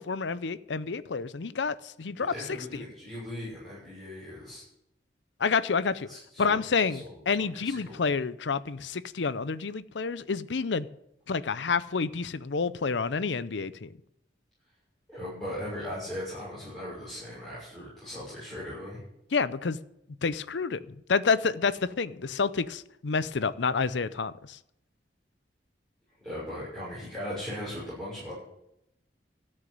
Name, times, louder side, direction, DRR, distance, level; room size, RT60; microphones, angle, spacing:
voice 1, 0.0-2.3 2.7-2.9 5.4-6.1 6.4-10.9 11.3-13.9 19.3-19.8 20.2-24.6, left 5 dB, 85° left, 0.6 m, -29 dB
voice 2, 2.2-4.6 6.1-6.6 6.9-8.1 15.1-19.0 26.2-28.4, left 1 dB, ahead, 6.3 m, -39 dB
13.5 x 6.5 x 9.3 m
head